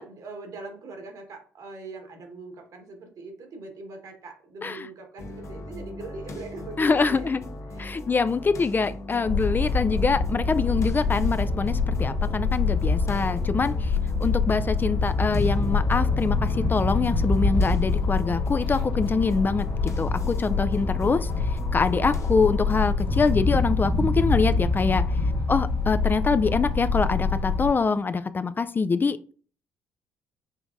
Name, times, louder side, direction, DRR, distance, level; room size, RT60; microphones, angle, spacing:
voice 1, 0.0-7.4 7.7-8.0, right 3 dB, 60° right, 4 dB, 1.4 m, -41 dB
sound 1, 5.2-23.5, left 2 dB, 45° left, 0.9 m, -40 dB
voice 2, 6.8-7.4 7.8-13.9 14.2-25.1 25.5-29.3, left 4 dB, 30° left, 12 dB, 0.3 m, -25 dB
sound 2, 9.2-27.7, left 4 dB, 70° left, 1.6 m, -25 dB
5.5 x 3.3 x 2.6 m, 0.41 s
hypercardioid pair, 55°, 7 cm